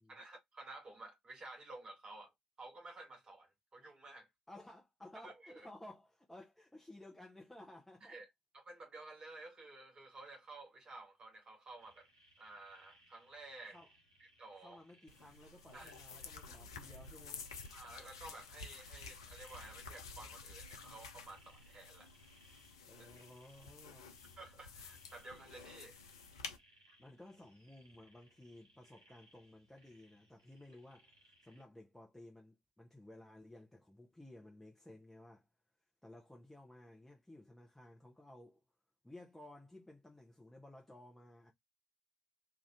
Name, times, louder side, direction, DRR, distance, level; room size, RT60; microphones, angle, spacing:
voice 1, 0.1-2.3 2.6-4.3 5.2-5.7 8.0-8.3 8.5-12.1 12.4-13.8 14.2-14.8 15.7-15.9 17.7-22.1 23.0-23.1 24.4-26.0, right 2 dB, 35° right, 0.8 m, -53 dB
voice 2, 4.5-8.2 13.7-13.9 14.6-17.5 22.9-24.2 27.0-31.2 31.4-35.5 36.0-38.6 39.0-41.5, left 1 dB, 5° left, 0.6 m, -56 dB
sound 1, 11.8-31.6, right 1 dB, 80° right, 1.0 m, -68 dB
sound 2, 15.1-26.6, left 5 dB, 80° left, 0.4 m, -52 dB
2.5 x 2.4 x 3.2 m
figure-of-eight pair, 45°, 3 cm